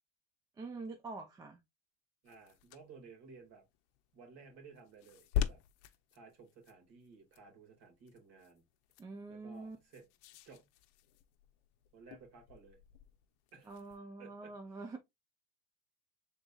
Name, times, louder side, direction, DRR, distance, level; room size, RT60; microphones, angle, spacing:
voice 1, 0.6-1.6 9.0-9.8 13.7-15.0, right 3 dB, 10° right, 0.3 m, -45 dB
voice 2, 2.2-3.6 4.1-5.6 6.1-8.6 9.3-10.1 10.5-10.7 11.9-12.8 13.5-13.8 14.2-14.9, right 5 dB, 45° right, 2.0 m, -56 dB
sound 1, 2.3-14.0, left 9 dB, 70° left, 0.8 m, -44 dB
5.3 x 3.9 x 2.3 m
supercardioid pair, 135°, 36 cm